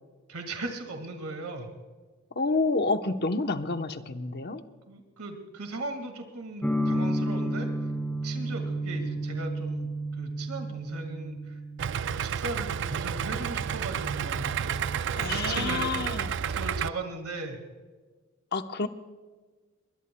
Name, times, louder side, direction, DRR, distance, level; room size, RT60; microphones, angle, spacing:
voice 1, 0.3-1.7 4.9-7.9 8.2-11.6 12.0-15.0 15.3-15.8 16.4-17.6, right 2 dB, 90° right, 5 dB, 1.9 m, -38 dB
voice 2, 2.3-4.6 15.2-16.3 18.5-18.9, left 3 dB, 45° left, 8 dB, 0.9 m, -29 dB
sound 1, 6.6-16.4, right 1 dB, 10° left, 1.1 m, -33 dB
Idling, 11.8-16.9, right 8 dB, 55° right, 0.4 m, -31 dB
22.5 x 21.0 x 2.2 m, 1.3 s
head